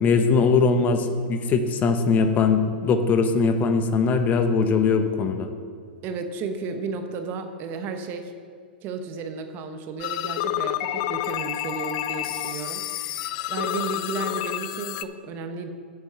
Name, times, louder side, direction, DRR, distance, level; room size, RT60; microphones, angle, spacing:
voice 1, 0.0-5.5, left 4 dB, 30° left, 7 dB, 0.8 m, -21 dB
voice 2, 6.0-8.3 8.8-12.8 13.5-15.7, right 4 dB, 40° right, 7 dB, 1.0 m, -33 dB
sound 1, 10.0-15.0, left 14 dB, 50° left, 0.4 m, -29 dB
8.2 x 7.0 x 6.7 m, 2.1 s
hypercardioid pair, 115°, 5 cm